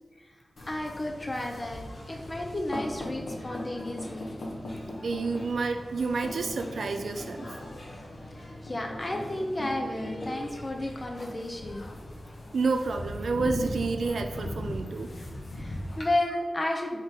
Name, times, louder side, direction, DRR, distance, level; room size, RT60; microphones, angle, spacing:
sound 1, 0.6-16.1, left 1 dB, 70° left, 0.9 m, -39 dB
voice 1, 0.7-4.3 8.6-11.9 15.6-17.0, left 1 dB, 35° left, 1 dB, 0.6 m, -32 dB
voice 2, 5.0-7.5 12.5-15.1, right 4 dB, 85° right, 6 dB, 0.4 m, -29 dB
3.7 x 3.6 x 4.0 m, 1.3 s
cardioid pair, 60°, 0 cm